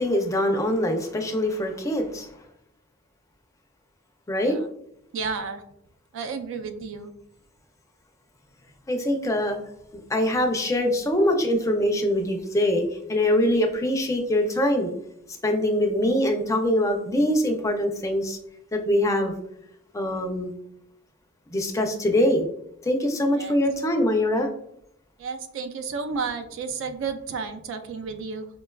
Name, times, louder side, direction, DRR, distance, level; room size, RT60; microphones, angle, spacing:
voice 1, 0.0-2.4 4.3-4.6 8.9-9.6 10.1-14.9 15.4-18.4 18.7-19.3 19.9-20.5 21.5-22.5 22.8-24.5, left 1 dB, 15° left, 4 dB, 0.4 m, -23 dB
voice 2, 5.1-5.6 6.1-7.1 23.4-23.5 25.2-28.5, right 5 dB, 65° right, 7 dB, 0.3 m, -32 dB
4.8 x 2.2 x 2.2 m, 0.76 s
head